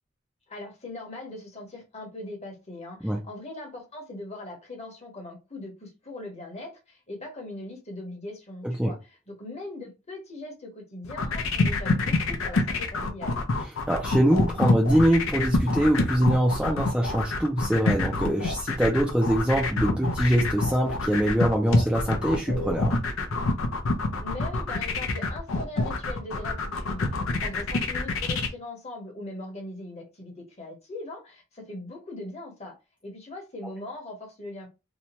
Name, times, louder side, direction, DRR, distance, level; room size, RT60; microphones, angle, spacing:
voice 1, 0.5-13.5 24.2-32.8 33.0-34.7, left 2 dB, 30° left, 1.0 m, -40 dB
sound 1, 11.0-28.5, left 3 dB, 75° left, 0.6 m, -26 dB
voice 2, 13.9-23.0, right 1 dB, 5° right, 0.4 m, -23 dB
2.8 x 2.2 x 2.9 m
head